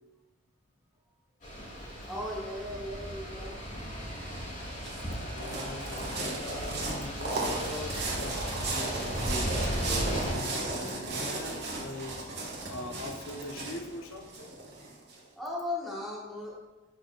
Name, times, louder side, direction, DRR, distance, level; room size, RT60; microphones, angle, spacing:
sound 1, 1.4-10.3, equal, 35° left, 1.9 m, -36 dB
voice 1, 2.1-3.6 15.4-16.6, left 1 dB, ahead, -5 dB, 1.2 m, -36 dB
sound 2, 4.3-15.1, right 2 dB, 50° right, 1.4 m, -35 dB
voice 2, 5.3-12.2 12.7-14.6, left 2 dB, 70° left, 4 dB, 0.6 m, -41 dB
11.5 x 4.1 x 2.3 m, 1.1 s
head